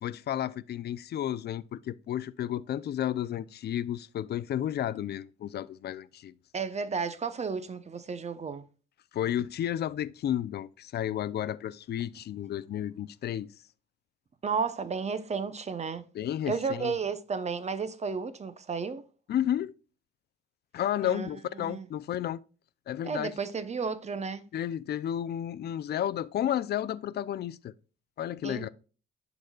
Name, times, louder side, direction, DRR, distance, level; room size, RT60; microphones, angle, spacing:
voice 1, 0.0-6.3 9.1-13.5 16.1-16.9 19.3-19.7 20.7-22.4 22.9-23.3 24.5-27.7 28.2-28.7, left 11 dB, 55° left, 0.5 m, -32 dB
voice 2, 6.5-8.6 14.4-16.0 16.5-19.0 21.0-21.9 23.0-24.5 28.4-28.7, right 5 dB, 35° right, 0.8 m, -33 dB
11.5 x 4.1 x 2.3 m
cardioid pair, 90°, 20 cm